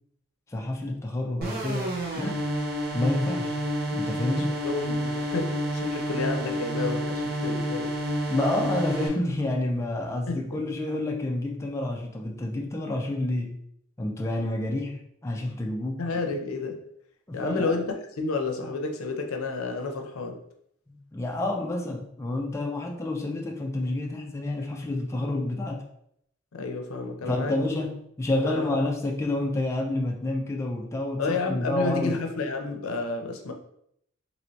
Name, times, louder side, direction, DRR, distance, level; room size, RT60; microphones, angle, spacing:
voice 1, 0.5-2.5 2.9-3.6 3.9-4.6 8.3-13.6 14.0-16.0 17.3-17.8 20.9-25.8 27.2-32.2, left 1 dB, 15° left, 1 dB, 0.3 m, -29 dB
sound 1, 1.4-9.1, equal, 50° right, 0.7 m, -29 dB
voice 2, 4.4-8.0 10.3-10.6 16.0-16.8 17.3-20.4 26.5-27.7 28.4-28.6 31.2-33.5, left 3 dB, 80° left, 4 dB, 0.5 m, -31 dB
3.1 x 2.9 x 2.7 m, 0.73 s
head